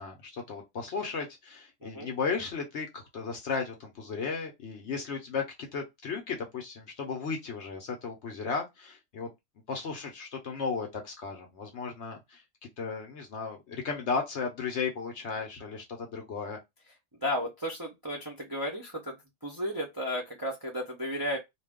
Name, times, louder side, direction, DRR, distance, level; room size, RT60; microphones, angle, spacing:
voice 1, 0.0-9.3 9.7-12.4 12.8-16.6, left 5 dB, 60° left, 0.8 m, -35 dB
voice 2, 17.2-21.4, equal, 30° right, 0.4 m, -34 dB
2.5 x 2.3 x 3.5 m
omnidirectional pair, 1.6 m